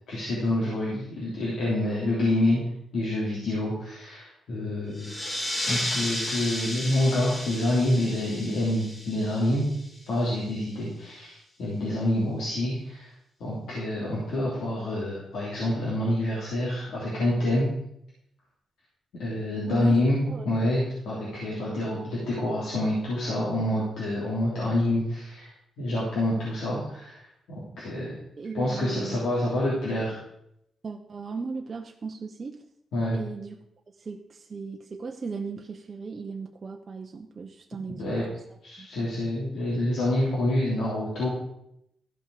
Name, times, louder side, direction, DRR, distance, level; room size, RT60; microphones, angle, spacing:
voice 1, 0.1-2.6 2.9-9.7 10.1-13.1 13.4-17.7 19.2-28.2 28.5-30.2 32.9-33.2 38.0-38.2 38.6-41.3, left 1 dB, 75° left, -6 dB, 3.3 m, -27 dB
sound 1, 4.9-10.1, left 1 dB, 30° left, 3.0 m, -33 dB
voice 2, 19.6-19.9 20.3-20.5 28.4-29.2 30.8-32.6 33.1-33.6 34.0-38.2 38.8-38.9, right 4 dB, 35° right, 2 dB, 0.8 m, -36 dB
14.0 x 5.7 x 4.9 m, 0.77 s
cardioid pair, 120°, 0 cm